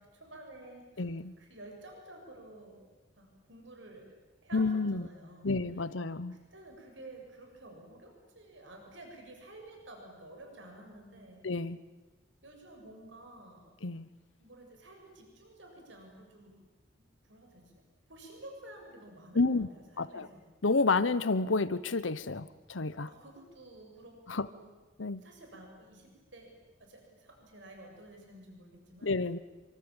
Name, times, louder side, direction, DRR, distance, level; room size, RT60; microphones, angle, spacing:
voice 1, 0.0-1.1 1.4-2.9 3.2-4.1 4.4-5.5 6.3-11.5 12.4-13.7 14.4-16.6 16.9-17.8 18.1-20.4 23.1-24.7 25.2-26.5 26.8-29.2, right 1 dB, 70° right, 2 dB, 7.2 m, -51 dB
voice 2, 1.0-1.3 4.5-5.1 5.4-6.4 11.4-11.8 13.8-14.1 19.3-19.7 20.0-20.3 20.6-23.1 24.3-24.5 25.0-25.2 29.0-29.4, left 3 dB, 90° left, 16 dB, 1.0 m, -30 dB
27.0 x 25.0 x 8.9 m, 1.2 s
head